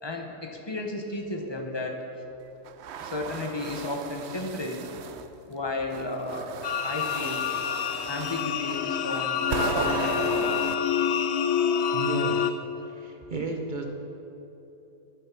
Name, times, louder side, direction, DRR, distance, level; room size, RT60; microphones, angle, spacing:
voice 1, 0.0-2.0 3.0-4.9 5.5-6.5 6.8-7.4 8.1-10.1, left 2 dB, 20° left, 2 dB, 0.7 m, -33 dB
sound 1, 2.7-5.3 5.9-10.8, right 6 dB, 85° right, 0.5 m, -35 dB
sound 2, 6.6-12.5, left 8 dB, 70° left, 0.8 m, -27 dB
voice 2, 11.9-12.6 12.8-13.9, right 3 dB, 35° right, 2 dB, 0.9 m, -33 dB
10.5 x 9.5 x 5.9 m, 3.0 s
omnidirectional pair, 1.8 m